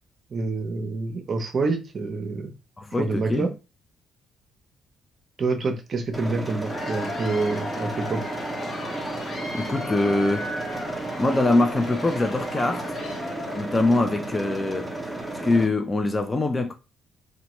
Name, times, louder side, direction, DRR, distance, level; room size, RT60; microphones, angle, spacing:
voice 1, 0.3-2.5 3.0-3.5 5.4-8.2, right 3 dB, 45° right, 0.6 m, -27 dB
voice 2, 2.8-3.5 9.5-10.6 11.2-12.9 13.5-14.9 15.4-16.7, left 2 dB, 25° left, 0.4 m, -23 dB
sound 1, 6.1-15.7, right 2 dB, ahead, 0.7 m, -33 dB
Cheering / Applause / Crowd, 6.5-14.1, left 2 dB, 55° left, 0.9 m, -36 dB
2.9 x 2.2 x 3.0 m
cardioid pair, 90°, 0 cm